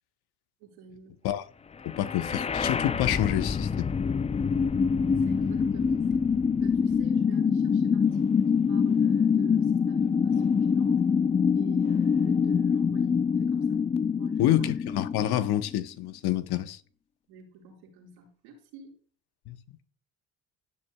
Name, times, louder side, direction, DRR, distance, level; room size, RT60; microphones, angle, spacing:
voice 1, 0.6-1.1 5.0-6.2 6.6-11.0 11.5-13.8 14.2-14.5 17.3-18.9, right 5 dB, 90° right, 5.0 m, -49 dB
voice 2, 1.8-4.0 14.4-16.8 19.5-19.6, left 13 dB, 70° left, 1.0 m, -27 dB
sound 1, 1.9-15.8, left 6 dB, 20° left, 0.3 m, -25 dB
15.5 x 7.9 x 2.3 m
supercardioid pair, 70°, 40 cm